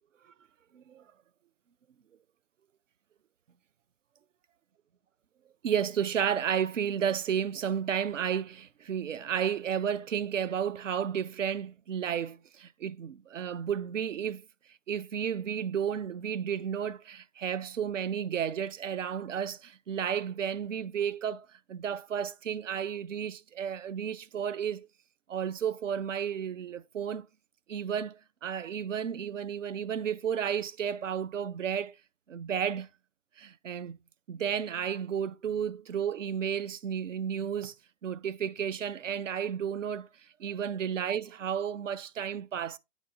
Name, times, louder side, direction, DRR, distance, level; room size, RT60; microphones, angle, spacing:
voice 1, 5.6-14.4 14.9-24.9 25.3-27.2 27.7-32.0 32.3-32.9 33.4-34.0 34.3-37.7 38.0-40.1 40.4-42.8, right 8 dB, 80° right, 0.6 m, -32 dB
9.0 x 4.0 x 3.5 m
figure-of-eight pair, 100°, 37 cm